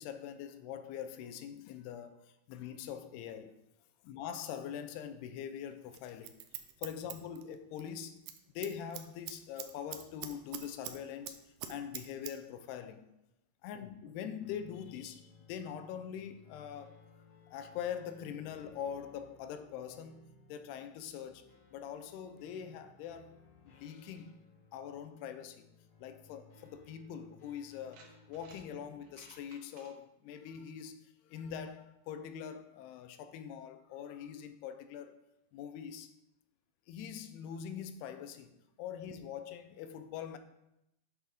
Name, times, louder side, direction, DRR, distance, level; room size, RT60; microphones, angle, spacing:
voice 1, 0.0-3.6 4.0-6.4 6.8-8.2 8.6-11.4 11.7-13.1 13.6-16.9 17.5-23.4 23.7-24.4 24.7-25.7 26.0-35.2 35.5-36.1 36.9-38.5 38.8-40.4, left 8 dB, 80° left, 2.4 m, -43 dB
Scissors, 5.9-7.9 8.2-8.4 8.6-11.0 11.2-12.3 12.6-12.7, right 12 dB, 80° right, 2.5 m, -43 dB
sound 1, 14.4-29.5, left 3 dB, 65° left, 1.7 m, -61 dB
sound 2, 26.9-27.0 27.7-28.6 29.0-29.9, right 4 dB, 65° right, 2.3 m, -58 dB
9.7 x 6.3 x 3.5 m
omnidirectional pair, 4.9 m